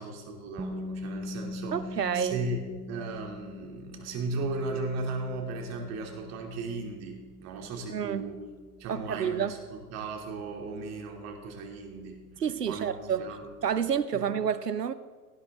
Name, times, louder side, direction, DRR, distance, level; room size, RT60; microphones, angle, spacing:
voice 1, 0.0-1.8 2.1-2.6 2.9-8.4 8.8-12.2 12.7-12.9 13.2-13.4 14.1-14.3, right 3 dB, 35° right, 2.9 m, -36 dB
sound 1, 0.6-12.4, left 1 dB, 5° right, 0.6 m, -43 dB
voice 2, 1.7-2.4 7.9-8.3 8.9-9.6 12.4-13.3 13.6-14.9, right 8 dB, 85° right, 0.9 m, -29 dB
18.0 x 9.8 x 3.7 m
figure-of-eight pair, 105°, 47 cm